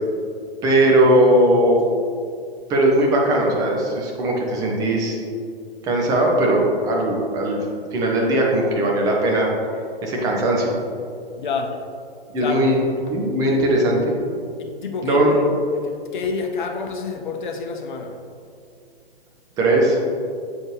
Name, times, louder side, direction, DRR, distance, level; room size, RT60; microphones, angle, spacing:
voice 1, 0.6-1.8 2.7-5.2 5.8-7.6 7.9-9.5 10.0-10.7 12.3-12.8 13.1-14.2 15.0-15.4 19.6-20.0, right 1 dB, 10° right, -2 dB, 0.6 m, -18 dB
voice 2, 11.4-11.8 12.4-12.7 14.6-18.2, left 4 dB, 50° left, 3 dB, 0.8 m, -28 dB
7.7 x 4.3 x 3.2 m, 2.4 s
figure-of-eight pair, 120°, 31 cm